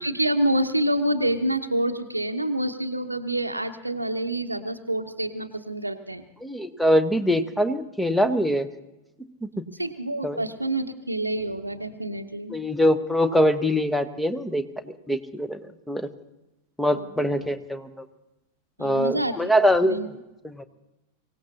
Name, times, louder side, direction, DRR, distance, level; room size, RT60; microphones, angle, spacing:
voice 1, 0.0-6.2 9.8-12.6 16.9-17.5 18.8-19.5 19.9-20.1, right 1 dB, 85° right, 6 dB, 0.8 m, -27 dB
voice 2, 6.4-8.7 9.4-9.5 10.2-10.4 12.5-15.6 15.9-16.1 16.8-18.0 18.8-20.0 20.4-20.6, equal, 5° left, 11 dB, 1.0 m, -23 dB
24.5 x 17.0 x 2.8 m, 0.98 s
figure-of-eight pair, 90°, 0 cm